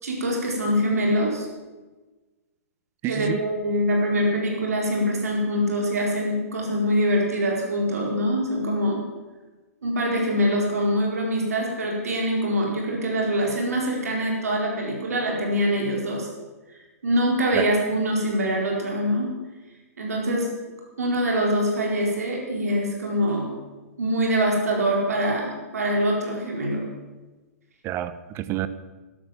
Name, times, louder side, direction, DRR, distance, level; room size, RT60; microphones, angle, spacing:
voice 1, 0.0-1.5 3.1-9.0 9.8-16.3 17.0-19.3 20.0-20.5 21.0-23.5 24.0-26.9, equal, 75° right, -1 dB, 4.3 m, -24 dB
voice 2, 3.0-3.4 17.5-17.7 27.8-28.7, right 12 dB, 30° right, 14 dB, 0.9 m, -28 dB
13.0 x 12.0 x 7.4 m, 1.2 s
figure-of-eight pair, 115°, 8 cm